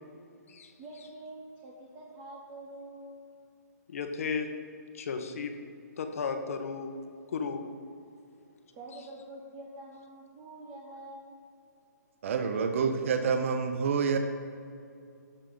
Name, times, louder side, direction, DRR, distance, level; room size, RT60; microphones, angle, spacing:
voice 1, 0.8-3.2 8.7-11.4, right 1 dB, 20° right, -2 dB, 1.0 m, -46 dB
voice 2, 3.9-4.5 4.9-5.5 6.0-6.9 7.3-7.6, left 5 dB, 50° left, 6 dB, 1.2 m, -34 dB
voice 3, 12.2-14.2, right 6 dB, 45° right, 6 dB, 0.8 m, -27 dB
17.0 x 6.7 x 3.9 m, 2.5 s
hypercardioid pair, 165°, 9 cm